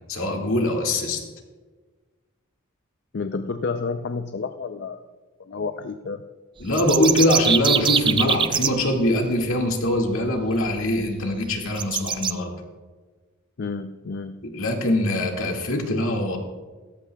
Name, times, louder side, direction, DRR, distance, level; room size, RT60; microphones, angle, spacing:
voice 1, 0.1-1.2 6.6-12.6 14.4-16.4, left 1 dB, 70° left, 1 dB, 2.0 m, -23 dB
voice 2, 3.1-5.0 5.5-6.2 13.6-14.3, left 4 dB, 55° left, 8 dB, 0.5 m, -30 dB
sound 1, 6.6-8.7 10.5-10.6 11.0-11.1 11.8-12.3, right 7 dB, 25° right, 0.3 m, -22 dB
17.0 x 14.0 x 2.3 m, 1.4 s
head